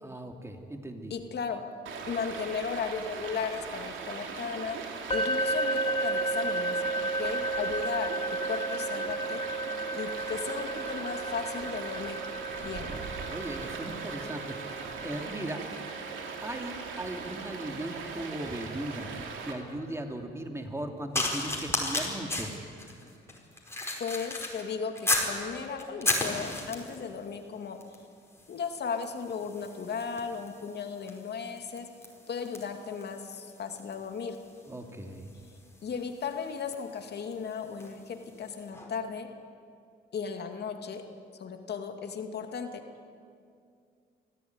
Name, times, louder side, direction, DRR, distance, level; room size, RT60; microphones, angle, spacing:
voice 1, 0.0-1.1 12.9-14.7 15.0-15.6 16.4-19.1 19.4-22.5 34.7-35.3, right 1 dB, 15° right, 4 dB, 2.8 m, -38 dB
voice 2, 1.1-1.7 2.1-8.1 8.4-9.4 9.9-12.2 12.6-12.9 24.0-27.8 28.5-31.9 32.3-34.4 35.8-39.3 40.1-41.0 41.3-42.8, left 6 dB, 55° left, 5 dB, 2.3 m, -36 dB
Stream, 1.9-19.5, right 5 dB, 75° right, 2.9 m, -40 dB
sound 1, 5.1-19.0, right 1 dB, 30° left, 2.1 m, -34 dB
sound 2, 21.1-25.4 25.8-27.0 27.8-28.0 28.3-38.0 38.7-38.9, left 2 dB, 15° left, 5.0 m, -35 dB
24.0 x 15.5 x 9.6 m, 2.3 s
cardioid pair, 90°, 20 cm